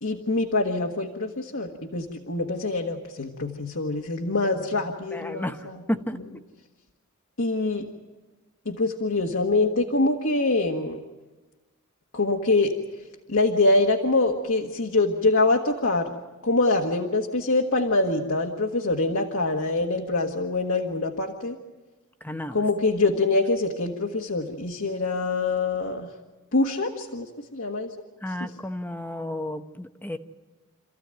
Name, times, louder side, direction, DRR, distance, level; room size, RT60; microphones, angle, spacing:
voice 1, 0.0-5.8 7.4-7.9 8.6-11.0 12.1-12.7 13.3-16.1 16.4-21.6 22.5-26.1 26.5-27.9 28.4-28.5, left 2 dB, 65° left, 1 dB, 1.6 m, -24 dB
voice 2, 5.1-6.2 22.2-22.6 28.2-30.2, left 1 dB, 10° left, 8 dB, 0.9 m, -32 dB
28.0 x 14.5 x 9.1 m, 1.2 s
head